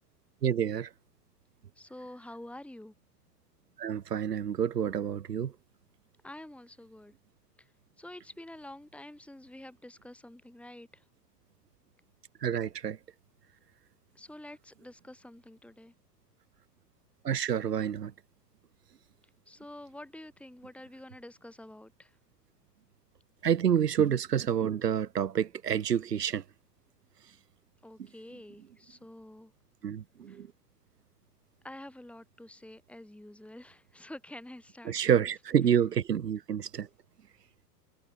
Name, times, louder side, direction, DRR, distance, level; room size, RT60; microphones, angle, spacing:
voice 1, 0.4-0.9 3.8-5.5 12.4-13.0 17.2-18.1 23.4-26.4 29.8-30.5 34.8-36.9, right 8 dB, 80° right, 1.0 m, -28 dB
voice 2, 1.8-2.9 6.2-7.1 8.0-11.0 14.1-15.9 19.5-22.1 27.8-29.5 30.3-30.4 31.6-35.3, left 1 dB, 5° left, 4.6 m, -48 dB
figure-of-eight pair, 90°, 47 cm